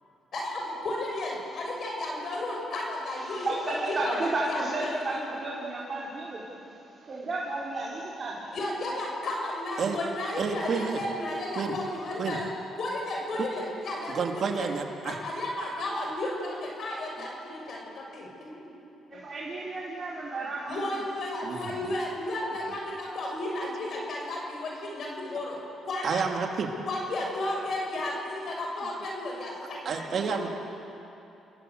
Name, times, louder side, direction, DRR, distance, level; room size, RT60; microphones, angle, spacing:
voice 1, 0.3-5.2 8.5-12.5 12.8-14.7 15.0-18.8 19.1-19.3 20.7-25.6 25.9-26.2 26.9-30.5, left 1 dB, 55° left, -1 dB, 7.1 m, -33 dB
voice 2, 3.1-6.4 7.0-8.6 19.1-20.9, right 2 dB, 40° right, -5 dB, 4.4 m, -33 dB
voice 3, 10.4-11.0 11.6-11.8 12.2-12.4 14.1-15.1 21.4-21.9 26.0-26.7 29.8-30.5, right 5 dB, 55° right, 3 dB, 2.6 m, -30 dB
29.5 x 17.5 x 8.0 m, 2.9 s
cardioid pair, 90°, 0 cm